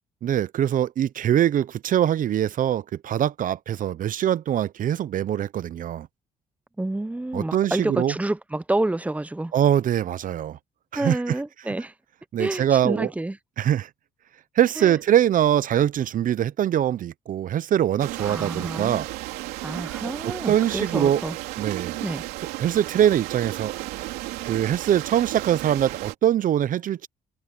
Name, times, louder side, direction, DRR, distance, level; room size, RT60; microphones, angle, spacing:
voice 1, 0.2-6.1 7.3-8.1 9.5-10.6 10.9-11.3 12.3-13.1 13.6-13.9 14.5-19.1 20.2-21.2 21.6-22.0 22.6-23.7 24.5-27.1, right 10 dB, 60° right, 0.7 m, -23 dB
voice 2, 6.8-9.5 10.9-11.9 12.4-13.4 14.8-15.0 18.2-19.0 19.6-21.4 22.0-22.2, right 2 dB, 10° right, 0.9 m, -28 dB
sound 1, 18.0-26.1, right 18 dB, 90° right, 3.2 m, -34 dB
supercardioid pair, 70°, 16 cm